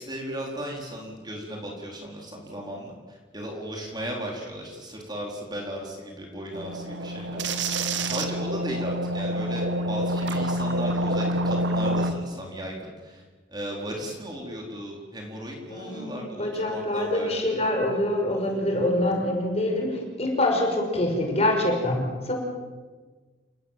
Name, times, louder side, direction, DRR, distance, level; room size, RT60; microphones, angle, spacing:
voice 1, 0.0-13.2 13.5-17.4 18.3-18.6, right 1 dB, 20° right, -1 dB, 4.4 m, -36 dB
sound 1, 6.5-12.1, right 1 dB, 75° right, 1.9 m, -27 dB
voice 2, 15.7-22.4, left 1 dB, 35° left, 1 dB, 6.0 m, -25 dB
29.0 x 18.0 x 7.6 m, 1.4 s
head